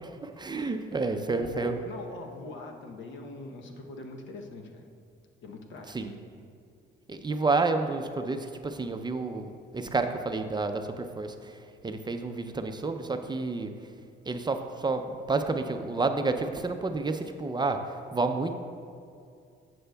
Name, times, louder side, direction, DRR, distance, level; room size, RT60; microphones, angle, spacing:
voice 1, 0.0-1.8 5.9-6.1 7.1-11.6 11.8-13.7 14.3-17.8 18.1-18.5, right 3 dB, 20° right, 6 dB, 0.5 m, -30 dB
voice 2, 1.3-4.8 5.4-6.2, left 3 dB, 70° left, 3 dB, 0.9 m, -42 dB
11.0 x 7.7 x 2.3 m, 2.3 s
cardioid pair, 90°, 20 cm